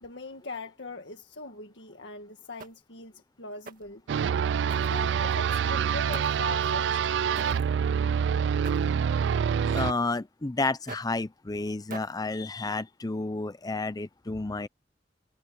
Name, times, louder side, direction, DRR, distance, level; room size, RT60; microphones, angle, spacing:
voice 1, 0.0-4.0 4.7-7.2, left 3 dB, 70° left, 1.9 m, -41 dB
sound 1, 2.6-3.0 3.7-4.0 4.7-5.4 6.1-6.5 7.3-7.7 8.6-9.0 9.8-10.1 10.9-11.2 11.9-12.3, right 4 dB, 50° right, 1.8 m, -44 dB
sound 2, 4.1-9.9, right 7 dB, 75° right, 0.3 m, -26 dB
voice 2, 9.6-14.7, left 3 dB, 20° left, 0.6 m, -31 dB
head